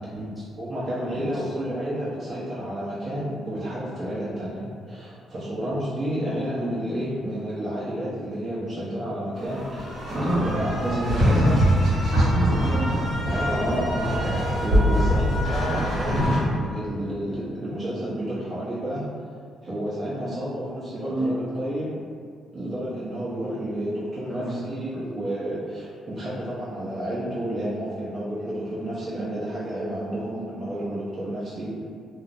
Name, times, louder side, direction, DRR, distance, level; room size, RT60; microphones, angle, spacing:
voice 1, 0.6-9.9 10.1-11.6 13.3-14.2 14.6-19.1 19.6-22.0 22.5-31.8, right 1 dB, 40° right, -10 dB, 0.7 m, -30 dB
voice 2, 1.1-1.4 10.1-11.5 12.1-13.1 15.6-15.7 21.1-21.3 24.3-24.5, right 1 dB, ahead, -10 dB, 0.9 m, -28 dB
sound 1, 9.4-16.4, equal, 60° right, 1.0 m, -23 dB
2.5 x 2.0 x 2.5 m, 2.1 s
cardioid pair, 90°, 0 cm